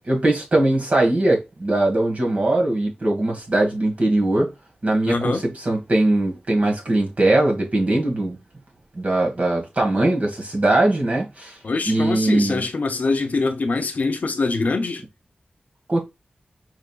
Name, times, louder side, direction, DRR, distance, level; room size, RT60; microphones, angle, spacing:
voice 1, 0.1-4.5 4.8-8.4 8.9-11.6 11.8-12.6 15.9-16.0, right 2 dB, 50° right, 1.6 m, -20 dB
voice 2, 5.1-5.4 11.6-15.0, left 3 dB, 65° left, 0.7 m, -23 dB
4.9 x 3.2 x 2.3 m
cardioid pair, 55°, 3 cm